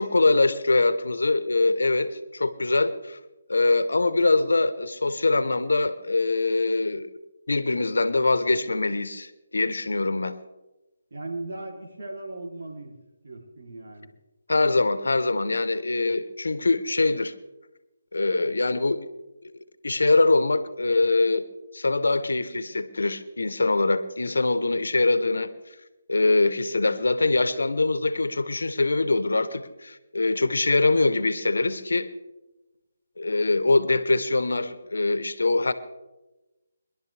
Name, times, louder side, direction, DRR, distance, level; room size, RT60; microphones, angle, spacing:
voice 1, 0.0-3.2 3.5-7.1 7.5-10.3 14.5-17.3 18.1-19.0 19.4-19.5 19.8-21.4 21.7-25.5 26.1-32.1 33.2-35.7, left 3 dB, 90° left, 13 dB, 1.0 m, -23 dB
voice 2, 11.1-13.0 13.2-14.1, right 2 dB, 65° right, 0 dB, 3.2 m, -37 dB
21.5 x 11.5 x 3.4 m, 1.0 s
hypercardioid pair, 165°, 0 cm